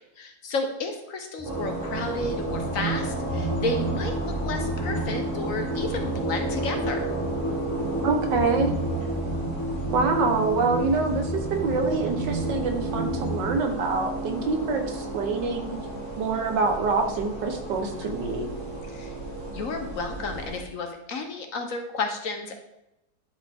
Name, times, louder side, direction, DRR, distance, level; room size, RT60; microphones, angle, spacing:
voice 1, 0.2-7.1 17.8-18.1 18.9-19.1 19.5-22.6, left 3 dB, 55° left, 5 dB, 1.2 m, -32 dB
sound 1, 1.4-13.5, right 1 dB, 5° left, 1.1 m, -31 dB
sound 2, 1.4-20.6, right 2 dB, 30° right, 2.2 m, -34 dB
voice 2, 8.0-8.7 9.9-15.8 16.2-18.5, right 4 dB, 85° right, 4 dB, 1.7 m, -26 dB
11.0 x 5.0 x 3.5 m, 0.89 s
omnidirectional pair, 1.8 m